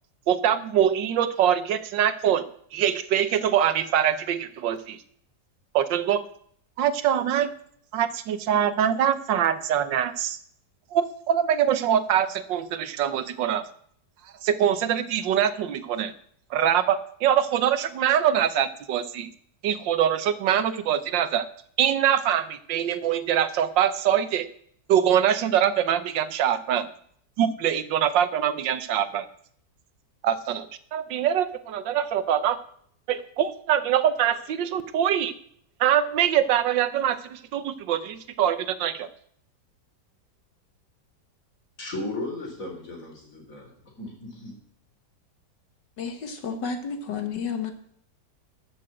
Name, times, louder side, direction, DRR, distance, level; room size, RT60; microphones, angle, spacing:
voice 1, 0.3-2.4 2.7-5.0 5.7-6.2 6.8-7.5 7.9-10.4 10.9-13.6 14.4-16.1 16.5-19.3 19.6-21.4 21.8-24.5 24.9-26.9 27.4-29.2 30.2-30.7 30.9-32.6 33.1-35.3 35.8-39.1, right 9 dB, 90° right, 12 dB, 1.6 m, -23 dB
voice 2, 41.8-44.6, left 2 dB, 45° left, 1 dB, 4.2 m, -36 dB
voice 3, 46.0-47.7, left 6 dB, 75° left, 6 dB, 2.0 m, -31 dB
13.5 x 6.6 x 7.7 m, 0.62 s
omnidirectional pair, 1.9 m